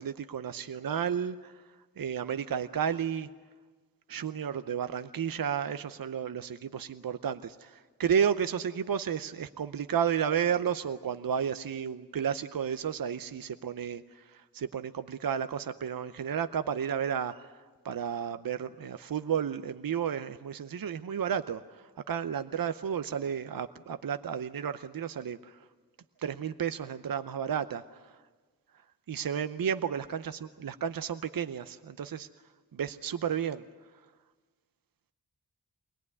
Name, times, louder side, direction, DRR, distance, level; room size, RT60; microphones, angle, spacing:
voice 1, 0.0-1.6 2.0-3.3 4.1-17.5 17.8-25.6 26.2-28.0 29.1-32.3 32.7-33.6, right 8 dB, 65° right, 11 dB, 0.7 m, -32 dB
23.5 x 18.0 x 9.6 m, 1.4 s
cardioid pair, 50°, 37 cm